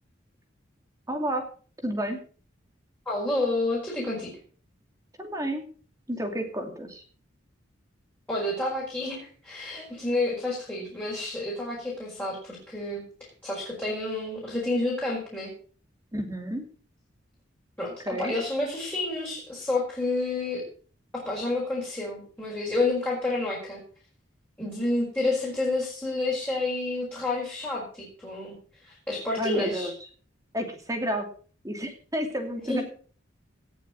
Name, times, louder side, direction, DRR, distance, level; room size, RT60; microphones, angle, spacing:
voice 1, 1.1-1.4 1.8-2.2 5.2-5.7 6.1-7.0 16.1-16.6 18.1-18.3 29.4-29.9 30.5-31.3 31.6-32.8, equal, 15° right, 4 dB, 2.6 m, -30 dB
voice 2, 3.0-4.4 8.3-15.5 17.8-20.6 21.1-23.8 24.6-28.6 28.8-29.9 32.7-32.8, left 2 dB, 10° left, -5 dB, 5.1 m, -29 dB
18.0 x 7.0 x 6.4 m, 0.42 s
head